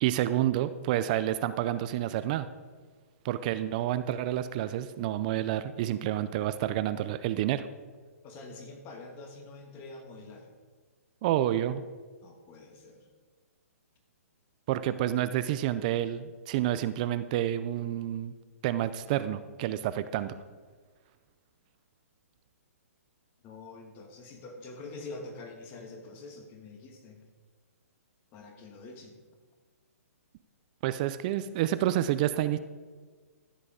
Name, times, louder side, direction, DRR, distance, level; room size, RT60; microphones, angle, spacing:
voice 1, 0.0-2.5 3.2-7.7 11.2-11.8 14.7-18.3 18.6-20.3 30.8-32.6, right 12 dB, 30° right, 13 dB, 0.4 m, -29 dB
voice 2, 8.2-10.5 12.2-13.1 23.4-27.3 28.3-29.2, left 3 dB, 25° left, 4 dB, 1.5 m, -46 dB
13.0 x 7.7 x 4.9 m, 1.5 s
hypercardioid pair, 150°, 8 cm